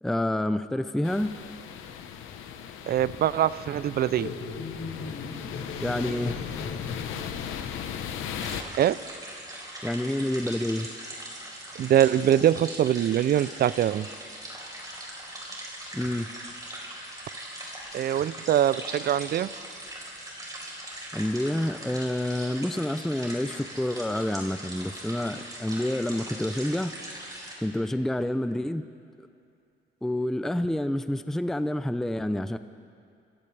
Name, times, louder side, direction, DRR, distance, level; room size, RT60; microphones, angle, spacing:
voice 1, 0.0-1.3 5.8-6.3 9.8-10.9 15.9-16.3 21.1-26.9 27.6-28.8 29.2-29.3 30.0-32.6, left 1 dB, ahead, 11 dB, 0.5 m, -28 dB
sound 1, 1.0-8.6, left 8 dB, 90° left, 1.0 m, -37 dB
voice 2, 2.9-4.3 8.8-9.0 11.8-14.1 17.9-19.5, right 11 dB, 50° right, 18 dB, 0.4 m, -23 dB
sound 2, 4.1-7.6, left 4 dB, 70° left, 3.1 m, -38 dB
sound 3, 8.4-27.5, right 1 dB, 20° right, 4.2 m, -40 dB
27.0 x 15.5 x 3.4 m, 2.5 s
cardioid pair, 90°, 20 cm